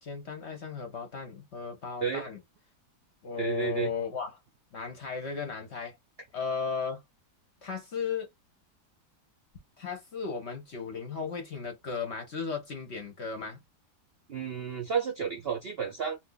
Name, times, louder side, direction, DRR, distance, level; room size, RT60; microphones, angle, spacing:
voice 1, 0.0-2.4 3.2-4.4 4.7-5.9 6.3-7.0 7.6-8.3 9.8-13.6, left 5 dB, 55° left, 0.8 m, -35 dB
voice 2, 3.4-3.9 14.3-16.2, right 7 dB, 60° right, 0.6 m, -31 dB
2.6 x 2.4 x 3.8 m
omnidirectional pair, 1.8 m